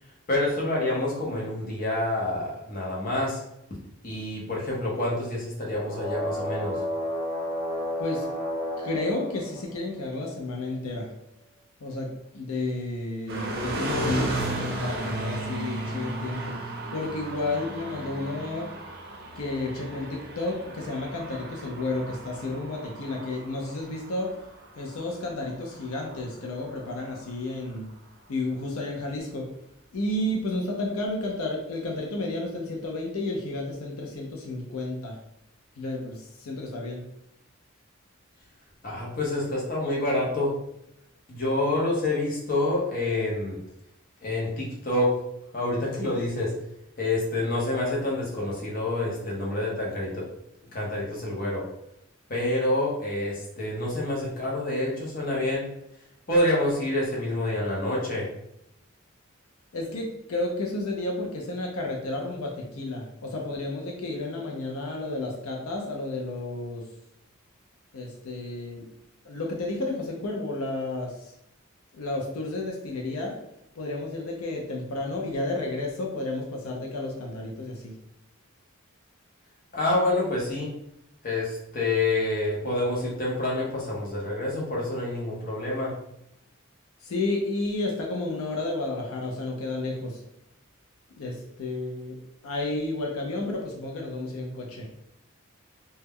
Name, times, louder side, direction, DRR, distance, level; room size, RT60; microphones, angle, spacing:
voice 1, 0.3-3.4 4.0-6.8 38.8-40.5 41.3-43.6 44.2-45.2 45.5-46.5 47.0-50.3 50.7-51.6 52.3-55.7 56.3-58.3 79.7-80.7 81.2-85.9, left 2 dB, 40° left, -4 dB, 0.7 m, -27 dB
sound 1, 5.6-10.2 13.6-16.4, left 1 dB, 5° right, 0.8 m, -34 dB
voice 2, 8.8-11.1 11.8-14.3 14.8-16.6 16.9-18.7 19.4-24.3 24.8-27.9 28.3-29.5 29.9-35.2 35.8-37.0 59.7-66.8 67.9-68.9 69.2-71.3 71.9-73.4 73.8-77.9 87.0-90.2 91.2-92.2 92.4-94.9, left 2 dB, 80° left, 0 dB, 0.5 m, -31 dB
sound 2, 13.3-27.3, right 1 dB, 45° right, 0.5 m, -35 dB
2.2 x 2.0 x 3.4 m, 0.79 s
head